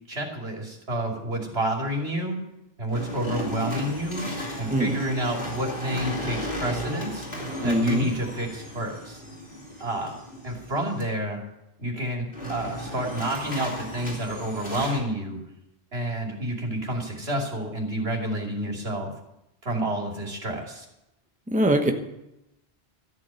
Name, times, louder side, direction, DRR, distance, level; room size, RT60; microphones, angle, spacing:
voice 1, 0.1-2.4 2.8-4.3 4.6-7.3 7.6-9.2 9.8-10.2 10.4-11.4 11.8-15.4 15.9-19.1 19.6-20.9, right 1 dB, 80° right, 0 dB, 3.1 m, -29 dB
food processor blender crunch veggies for smoothie various, 2.9-11.0 12.3-15.0, equal, 60° left, 3.7 m, -35 dB
voice 2, 7.6-8.1 21.5-21.9, right 1 dB, 10° right, 4 dB, 1.1 m, -22 dB
13.5 x 8.6 x 8.8 m, 0.88 s
omnidirectional pair, 1.1 m